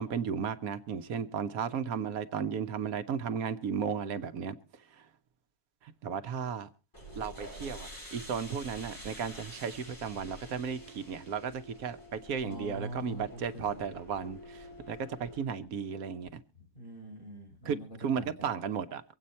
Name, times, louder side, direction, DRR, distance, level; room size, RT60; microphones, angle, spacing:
voice 1, 0.0-4.6 4.9-5.1 5.8-6.7 7.1-16.4 17.6-19.0, right 7 dB, 85° right, 1.3 m, -35 dB
sound 1, 6.9-15.4, equal, 15° left, 3.7 m, -48 dB
voice 2, 12.4-13.9 16.6-17.9 18.2-18.5, equal, 40° left, 5.1 m, -44 dB
24.5 x 8.5 x 4.2 m
omnidirectional pair, 1.5 m